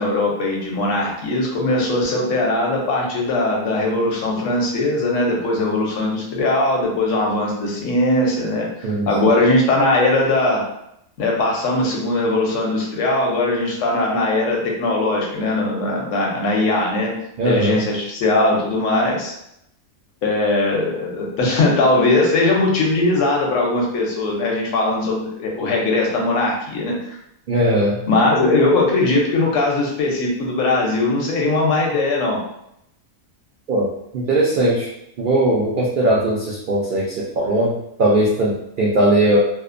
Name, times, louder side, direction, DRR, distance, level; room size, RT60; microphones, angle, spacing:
voice 1, 0.0-10.6 11.2-17.1 17.4-19.3 20.2-27.2 28.1-32.4, left 2 dB, 70° left, -1 dB, 1.0 m, -20 dB
voice 2, 17.4-17.8 27.5-28.0 33.7-33.9 34.1-34.9 35.2-39.4, right 1 dB, 85° right, -6 dB, 0.4 m, -19 dB
2.7 x 2.0 x 2.4 m, 0.78 s
omnidirectional pair, 1.4 m